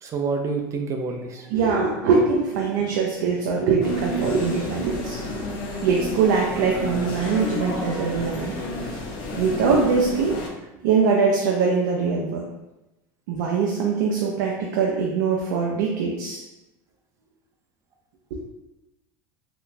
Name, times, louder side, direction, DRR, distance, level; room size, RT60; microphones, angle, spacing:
voice 1, 0.0-1.5 8.8-9.0, right 4 dB, 30° right, 3 dB, 0.4 m, -28 dB
voice 2, 1.5-5.2 5.8-8.5 9.3-10.3 10.8-12.4 13.3-16.4 18.3-18.4, right 5 dB, 75° right, -2 dB, 0.5 m, -22 dB
sound 1, 3.8-10.5, left 1 dB, 50° left, 0.6 m, -31 dB
3.7 x 2.3 x 2.6 m, 0.98 s
supercardioid pair, 125°, 10 cm